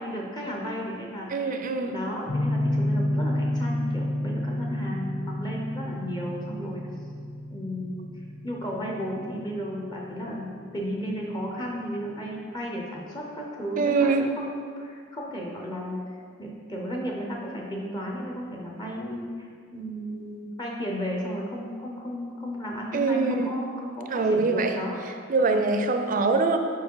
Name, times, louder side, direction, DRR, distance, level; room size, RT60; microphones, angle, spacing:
voice 1, 0.0-6.8 7.5-8.1 8.4-15.9 16.4-25.7, equal, 20° left, -1 dB, 0.6 m, -34 dB
voice 2, 1.3-1.9 13.8-14.3 22.9-23.6 24.1-24.8 25.3-26.6, right 3 dB, 45° right, 6 dB, 0.4 m, -23 dB
sound 1, 2.3-11.0, left 1 dB, 60° left, 1.2 m, -30 dB
4.9 x 4.7 x 4.6 m, 2.3 s
head